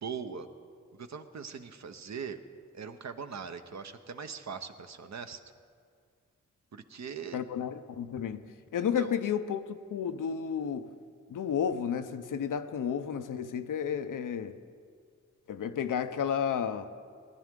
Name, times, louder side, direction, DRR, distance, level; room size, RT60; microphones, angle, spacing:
voice 1, 0.0-0.5 0.9-2.4 2.7-5.4 6.7-7.4 8.8-9.1, right 6 dB, 60° right, 0.8 m, -41 dB
voice 2, 7.3-10.9 11.3-14.6 15.5-16.9, left 8 dB, 85° left, 0.6 m, -32 dB
18.5 x 10.5 x 3.7 m
cardioid pair, 55°, 31 cm